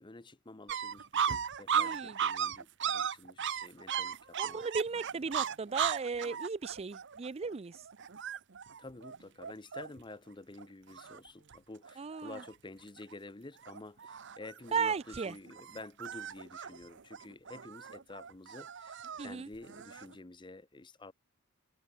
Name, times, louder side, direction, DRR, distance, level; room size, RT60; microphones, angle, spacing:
voice 1, 0.0-4.6 8.8-21.1, left 2 dB, 25° left, 0.9 m, -50 dB
sound 1, 0.7-10.1 10.6-10.7 10.9-11.6 11.8-12.5 13.0-13.3 13.6-20.2, right 8 dB, 60° right, 1.0 m, -37 dB
voice 2, 1.7-2.2 4.4-7.8 12.0-12.4 14.7-15.3 19.2-19.5, right 5 dB, 30° right, 0.5 m, -35 dB
head